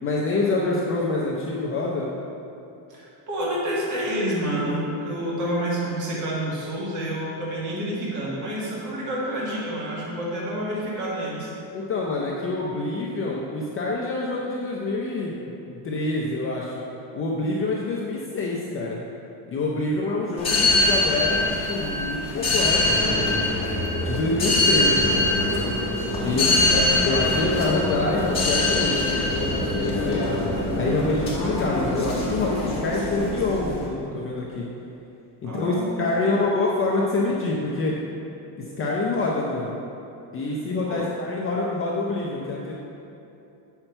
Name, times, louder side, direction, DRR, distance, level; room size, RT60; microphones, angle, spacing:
voice 1, 0.0-2.1 11.7-16.8 17.1-19.0 19.5-23.3 24.0-25.3 26.2-30.2 30.7-34.7 35.4-38.0 38.6-39.8 40.3-42.7, left 2 dB, 30° left, -4 dB, 0.5 m, -26 dB
voice 2, 2.9-11.5 26.2-26.9 35.4-36.4 40.9-41.1, right 1 dB, 40° right, -5 dB, 1.7 m, -29 dB
sound 1, 20.4-33.9, left 2 dB, 10° left, 1.7 m, -23 dB
7.8 x 5.8 x 4.4 m, 2.9 s
cardioid pair, 175°, 47 cm